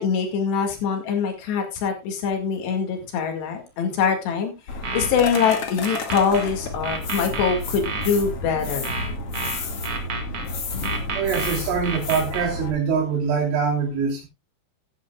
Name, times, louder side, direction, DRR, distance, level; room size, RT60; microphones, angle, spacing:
voice 1, 0.0-4.5 4.9-8.9, left 6 dB, 65° left, 4.1 m, -23 dB
sound 1, 4.7-12.7, left 3 dB, 50° left, 1.9 m, -31 dB
sound 2, 4.7-6.5 6.8-8.1 8.8-10.5 10.8-12.5, right 4 dB, 45° right, 2.2 m, -30 dB
voice 2, 11.1-14.3, right 6 dB, 75° right, 5.4 m, -24 dB
16.0 x 11.0 x 2.3 m
omnidirectional pair, 5.4 m